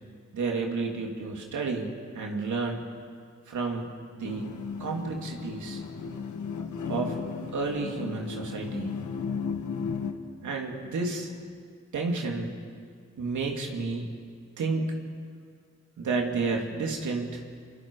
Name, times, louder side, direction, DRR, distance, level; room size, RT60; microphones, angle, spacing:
voice 1, 0.3-2.8 3.5-3.9 4.1-4.4 4.8-5.8 6.9-7.2 7.5-8.9 10.4-11.3 11.9-12.5 13.2-14.1 14.6-14.9 16.0-17.4, right 4 dB, 90° right, 1 dB, 2.9 m, -31 dB
sound 1, 4.2-10.1, left 5 dB, 90° left, 1.5 m, -35 dB
29.0 x 24.0 x 4.9 m, 2.1 s
cardioid pair, 45°, 29 cm